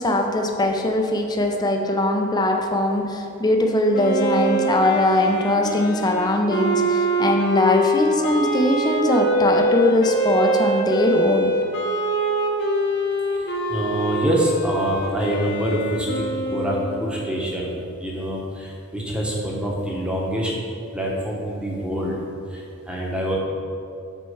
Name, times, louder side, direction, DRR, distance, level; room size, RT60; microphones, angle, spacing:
voice 1, 0.0-11.5, left 1 dB, 20° left, 2 dB, 0.5 m, -21 dB
Wind instrument woodwind instrument, 3.9-17.3, right 1 dB, 55° left, 0.8 m, -24 dB
voice 2, 13.3-20.5 20.9-22.2 22.5-23.4, equal, 5° right, -3 dB, 1.1 m, -25 dB
6.3 x 4.3 x 5.6 m, 2.5 s
head